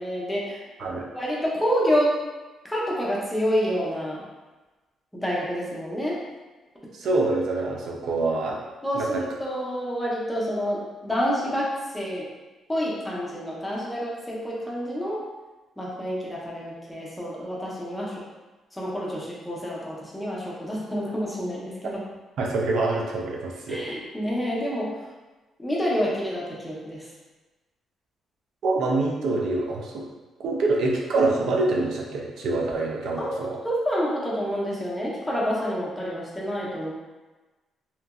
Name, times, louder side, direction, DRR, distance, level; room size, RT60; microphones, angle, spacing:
voice 1, 0.0-0.6 0.9-2.1 2.6-4.2 5.1-6.2 8.8-11.7 11.9-12.3 12.7-15.2 15.8-18.1 18.7-22.0 23.7-24.9 25.6-27.1 33.2-33.3 33.6-36.9, equal, 5° left, -5 dB, 0.7 m, -28 dB
voice 2, 6.9-8.6 8.9-9.3 22.4-23.8 28.6-30.1 30.4-33.6, right 2 dB, 70° right, -1 dB, 0.4 m, -25 dB
2.9 x 2.5 x 2.3 m, 1.2 s
cardioid pair, 90°, 0 cm